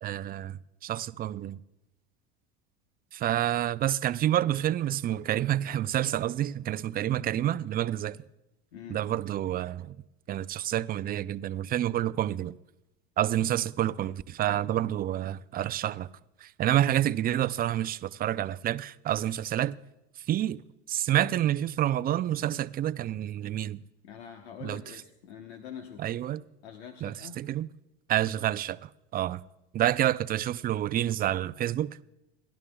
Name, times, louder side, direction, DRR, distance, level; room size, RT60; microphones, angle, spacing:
voice 1, 0.0-1.6 3.1-8.2 8.9-10.0 10.3-12.5 13.2-16.1 16.4-19.8 20.3-20.6 20.9-23.8 24.6-24.8 26.0-26.4 27.0-27.7 28.1-29.4 29.7-32.0, right 12 dB, 30° right, 0.4 m, -28 dB
voice 2, 8.7-9.0 24.0-26.0 26.6-27.4, left 8 dB, 85° left, 1.2 m, -45 dB
28.5 x 11.5 x 2.3 m
hypercardioid pair, 95°, 32 cm